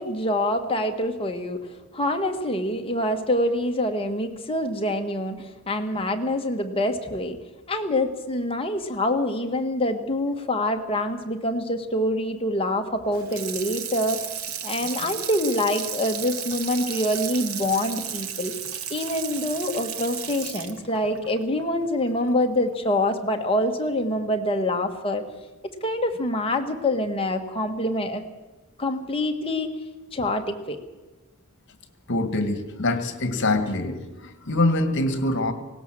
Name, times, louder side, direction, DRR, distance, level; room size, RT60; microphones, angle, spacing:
voice 1, 0.0-1.7 1.9-7.4 7.7-14.2 14.6-18.5 18.9-25.2 25.6-28.2 28.8-29.7 30.1-30.8, left 1 dB, 25° left, 4 dB, 1.8 m, -25 dB
Water tap faucet / Sink (filling or washing), 13.1-22.3 22.7-22.8, right 8 dB, 80° right, 1.4 m, -34 dB
voice 2, 32.1-35.5, left 2 dB, 60° left, 9 dB, 1.9 m, -24 dB
19.0 x 18.0 x 7.7 m, 1.2 s
head